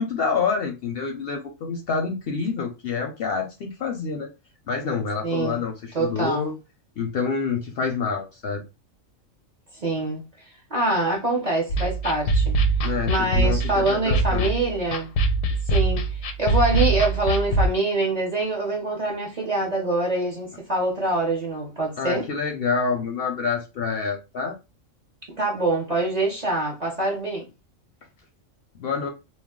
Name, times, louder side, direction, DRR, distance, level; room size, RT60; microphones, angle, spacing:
voice 1, 0.0-4.3 4.7-6.5 7.0-8.6 12.8-14.5 22.0-24.6 28.7-29.1, left 5 dB, 65° left, 0.6 m, -27 dB
voice 2, 5.2-5.6 5.9-6.5 9.7-10.2 10.7-12.6 13.1-15.1 15.7-22.3 25.4-27.4, right 2 dB, 45° right, 0.6 m, -25 dB
sound 1, 11.7-17.7, right 3 dB, 85° left, 1.0 m, -23 dB
2.3 x 2.1 x 3.5 m
omnidirectional pair, 1.3 m